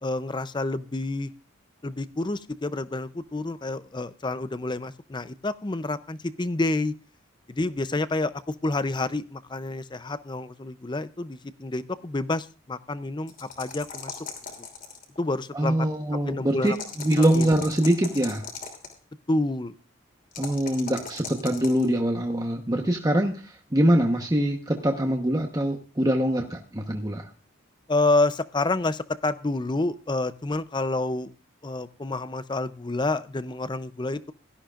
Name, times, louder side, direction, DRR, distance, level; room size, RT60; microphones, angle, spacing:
voice 1, 0.0-1.3 1.8-6.9 7.5-14.2 15.2-16.8 17.4-17.5 19.3-19.7 27.9-31.3 31.6-34.3, left 2 dB, 20° left, 14 dB, 0.5 m, -28 dB
sound 1, 13.3-15.2 16.6-18.9 20.3-21.9, left 5 dB, 40° left, 2.9 m, -38 dB
voice 2, 15.5-16.7 17.0-18.4 20.4-27.3, right 1 dB, 20° right, 2 dB, 1.0 m, -24 dB
16.5 x 13.0 x 2.4 m, 0.35 s
head